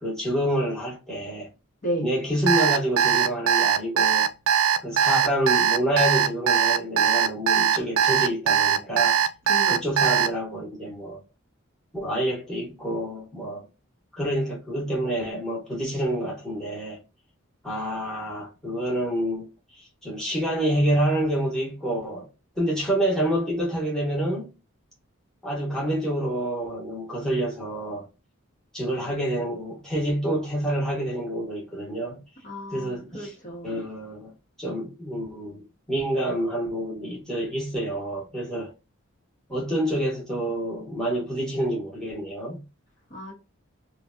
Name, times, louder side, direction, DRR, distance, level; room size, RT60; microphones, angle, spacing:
voice 1, 0.0-1.5 2.0-4.3 4.8-9.2 9.7-11.2 11.9-13.7 14.2-17.0 17.6-19.5 20.0-22.3 22.6-24.5 25.4-28.1 28.7-32.2 32.7-33.3 33.6-34.3 34.6-38.7 39.5-42.6, right 1 dB, 5° left, 1.4 m, -27 dB
voice 2, 1.8-2.1 9.5-9.8 32.4-33.8 43.1-43.3, equal, 40° left, 1.2 m, -33 dB
Alarm, 2.5-10.3, right 8 dB, 80° right, 0.4 m, -20 dB
3.1 x 2.3 x 2.6 m
head